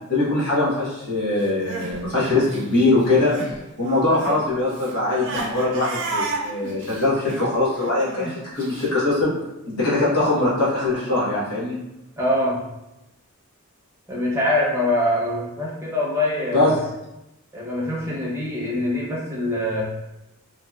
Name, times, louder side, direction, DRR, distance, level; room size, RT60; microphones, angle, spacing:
voice 1, 0.1-3.3 3.8-9.3 9.7-11.8 16.5-16.7, left 2 dB, 85° left, -8 dB, 1.2 m, -22 dB
Crying sobbing, 1.4-3.6 3.8-8.9, right 3 dB, 55° right, 0.5 m, -32 dB
voice 2, 12.2-12.6 14.1-16.7 17.5-19.8, left 1 dB, 10° right, -5 dB, 0.6 m, -24 dB
2.8 x 2.7 x 2.3 m, 0.94 s
head